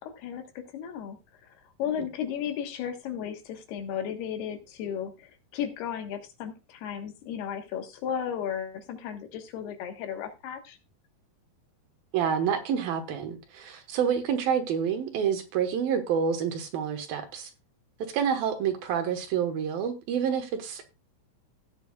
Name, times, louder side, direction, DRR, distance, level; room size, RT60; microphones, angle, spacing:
voice 1, 0.0-10.8, left 8 dB, 75° left, 3.3 m, -35 dB
voice 2, 12.1-17.5 18.1-20.8, right 7 dB, 70° right, 2.8 m, -28 dB
16.5 x 9.1 x 2.3 m
omnidirectional pair, 4.7 m